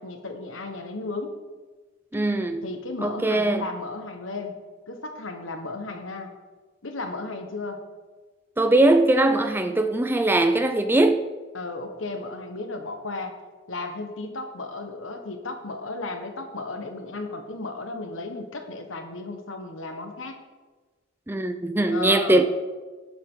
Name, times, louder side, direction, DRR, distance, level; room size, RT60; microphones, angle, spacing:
voice 1, 0.0-1.4 2.6-4.5 4.9-6.3 6.8-7.8 11.5-13.4 13.7-20.4 21.9-22.4, left 3 dB, 75° left, 1.4 m, -34 dB
voice 2, 2.1-2.6 3.0-3.6 8.6-11.2 21.3-22.4, right 2 dB, 10° right, 0.5 m, -21 dB
17.5 x 7.6 x 3.9 m
head